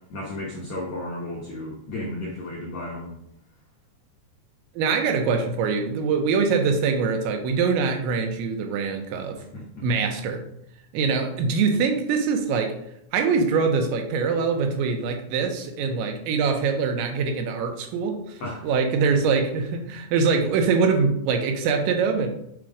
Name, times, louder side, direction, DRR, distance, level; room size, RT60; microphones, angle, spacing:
voice 1, 0.1-3.1 9.5-9.8 18.4-18.7, left 1 dB, 75° left, -3 dB, 1.5 m, -33 dB
voice 2, 4.8-9.4 9.8-10.4 10.9-12.7 13.1-22.3, right 5 dB, 85° right, 4 dB, 3.3 m, -23 dB
7.6 x 4.5 x 5.1 m, 0.75 s
omnidirectional pair, 5.1 m